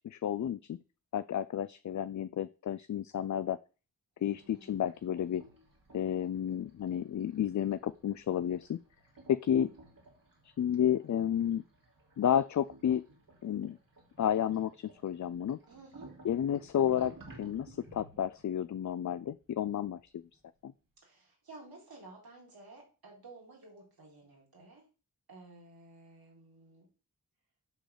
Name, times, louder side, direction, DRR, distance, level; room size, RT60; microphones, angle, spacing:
voice 1, 0.0-0.8 1.1-3.6 4.2-5.4 5.9-8.8 9.3-9.7 10.6-11.6 12.2-13.0 13.4-13.8 14.2-15.6 16.2-20.1 20.6-20.7, left 9 dB, 50° left, 14 dB, 0.4 m, -31 dB
voice 2, 4.2-4.8 15.7-16.1 21.0-24.8 25.3-26.9, right 2 dB, 80° right, -2 dB, 3.8 m, -53 dB
sound 1, 4.3-20.4, right 2 dB, 65° right, 3.0 m, -57 dB
8.0 x 3.9 x 6.6 m, 0.35 s
cardioid pair, 45°, 37 cm